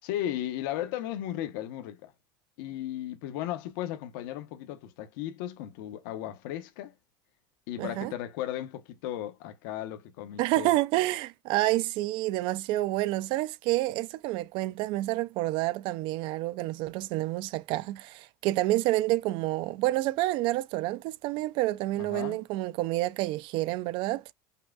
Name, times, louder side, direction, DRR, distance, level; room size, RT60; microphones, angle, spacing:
voice 1, 0.0-2.1 2.6-6.9 7.7-10.7 22.0-22.4, left 12 dB, 75° left, 0.8 m, -35 dB
voice 2, 7.8-8.1 10.4-24.3, right 17 dB, 50° right, 0.3 m, -28 dB
5.5 x 2.2 x 2.4 m
cardioid pair, 155°, 11 cm